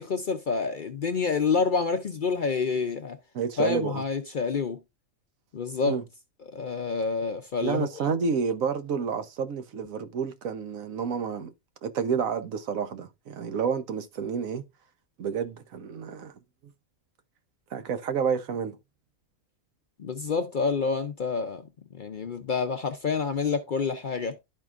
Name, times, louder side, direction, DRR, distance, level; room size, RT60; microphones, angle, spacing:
voice 1, 0.0-3.2 3.6-4.8 5.5-6.0 6.5-7.9 20.0-21.6 21.9-24.4, left 5 dB, 50° left, 0.6 m, -28 dB
voice 2, 3.3-4.0 5.9-6.0 7.6-11.5 11.8-14.6 15.2-16.3 17.7-18.8, right 6 dB, 80° right, 1.2 m, -29 dB
12.0 x 4.5 x 2.4 m
omnidirectional pair, 1.4 m